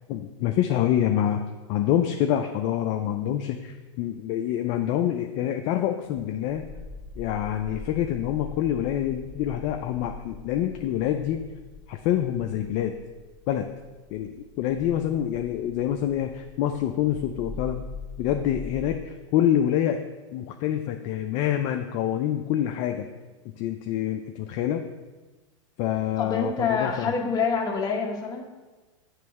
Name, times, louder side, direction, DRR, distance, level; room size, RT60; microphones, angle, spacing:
voice 1, 0.1-1.4 1.7-6.7 7.2-11.4 11.9-13.0 13.5-13.7 14.1-17.9 18.2-20.0 20.3-23.1 23.4-24.8 25.8-27.1, left 11 dB, 45° left, 5 dB, 0.4 m, -26 dB
sound 1, 6.4-19.0, left 3 dB, 15° right, 1.5 m, -43 dB
voice 2, 26.2-28.5, left 5 dB, 25° left, 1 dB, 0.9 m, -26 dB
7.4 x 3.1 x 4.7 m, 1.2 s
hypercardioid pair, 125°, 16 cm